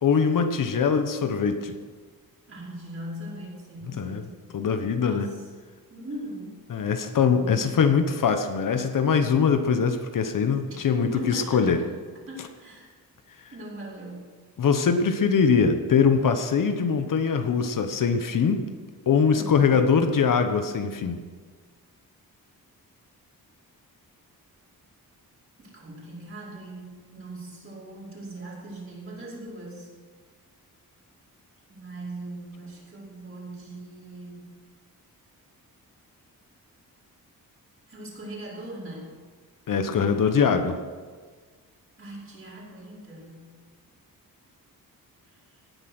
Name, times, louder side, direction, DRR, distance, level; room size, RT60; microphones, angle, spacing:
voice 1, 0.0-1.7 3.9-4.2 4.5-5.3 6.7-11.8 14.6-18.6 19.1-21.2 39.7-40.8, left 6 dB, 60° left, 7 dB, 1.2 m, -22 dB
voice 2, 2.5-4.3 5.0-5.5 5.9-6.6 7.4-8.0 10.7-11.9 12.3-12.9 13.5-14.2 15.2-15.3 19.3-19.7 25.6-29.9 31.7-34.5 37.9-39.1 42.0-43.4 45.3-45.4, right 1 dB, 35° right, -5 dB, 5.3 m, -40 dB
17.5 x 10.0 x 6.2 m, 1.5 s
wide cardioid pair, 150°, 36 cm